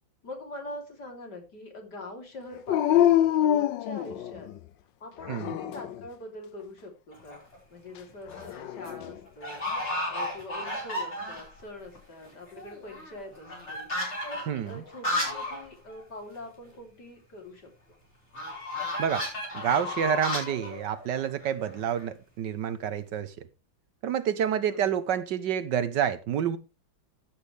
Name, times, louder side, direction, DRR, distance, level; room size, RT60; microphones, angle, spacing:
voice 1, 0.2-4.5 5.0-9.6 10.1-13.9 14.2-18.0 24.6-24.9, left 1 dB, 60° left, 3.9 m, -43 dB
Dog, 2.7-4.6 5.2-6.0 8.3-9.1, left 11 dB, 75° left, 1.4 m, -25 dB
sound 1, 7.1-7.6 8.1-8.6 8.8-8.9 9.4-11.6 12.0-12.1 12.3-15.6 15.9-16.0 16.3-16.4 18.3-22.1, left 1 dB, 35° left, 5.1 m, -34 dB
voice 2, 19.5-23.3 24.0-26.6, right 9 dB, 70° right, 1.5 m, -28 dB
14.5 x 8.4 x 3.4 m
omnidirectional pair, 2.1 m